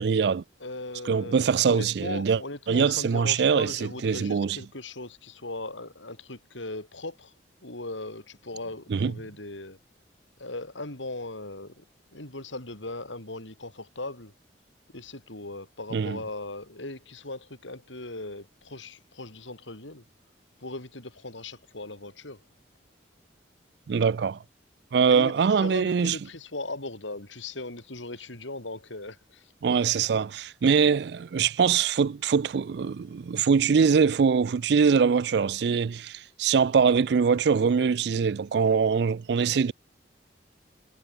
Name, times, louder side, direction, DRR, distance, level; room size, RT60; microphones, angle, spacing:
voice 1, 0.0-0.4 1.1-2.4 2.7-4.6 8.9-9.1 15.9-16.2 23.9-24.4 24.9-26.2 29.6-39.7, right 6 dB, 60° right, 0.4 m, -23 dB
voice 2, 0.6-7.3 7.6-9.8 10.4-11.8 12.1-14.3 14.9-20.0 20.6-22.4 25.1-29.5, left 2 dB, 85° left, 5.0 m, -38 dB
head